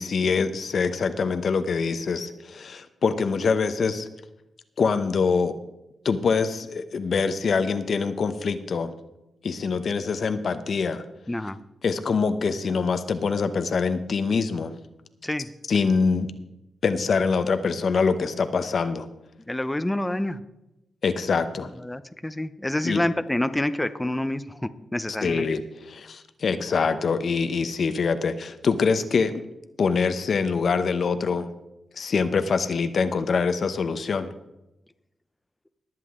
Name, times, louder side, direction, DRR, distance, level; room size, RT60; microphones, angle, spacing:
voice 1, 0.0-4.1 4.8-5.5 6.0-8.9 9.4-11.0 11.8-14.7 15.7-16.3 16.8-19.1 21.0-21.7 22.8-23.0 25.2-25.6 25.9-29.3 29.8-31.5 31.9-34.3, left 5 dB, 65° left, 10 dB, 0.9 m, -24 dB
voice 2, 11.3-11.6 15.2-15.5 19.5-20.4 21.8-25.5, left 1 dB, 15° left, 11 dB, 0.7 m, -27 dB
21.0 x 7.6 x 3.7 m, 0.93 s
cardioid pair, 65°, 0 cm